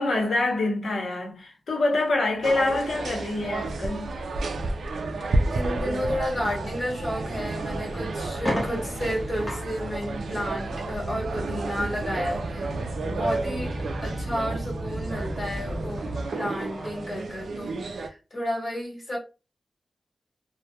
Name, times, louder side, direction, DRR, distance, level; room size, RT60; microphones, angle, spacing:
voice 1, 0.0-4.1, left 2 dB, 75° left, 0.8 m, -26 dB
sound 1, 2.4-16.3, right 1 dB, 30° right, 0.5 m, -36 dB
sound 2, 2.4-18.1, right 3 dB, 90° right, 0.3 m, -32 dB
voice 2, 5.5-12.7 13.0-19.2, equal, 30° left, 1.1 m, -32 dB
sound 3, 7.4-7.5 7.9-8.0 8.3-17.0, equal, 15° left, 0.8 m, -39 dB
2.2 x 2.1 x 2.7 m
wide cardioid pair, 150°, 0 cm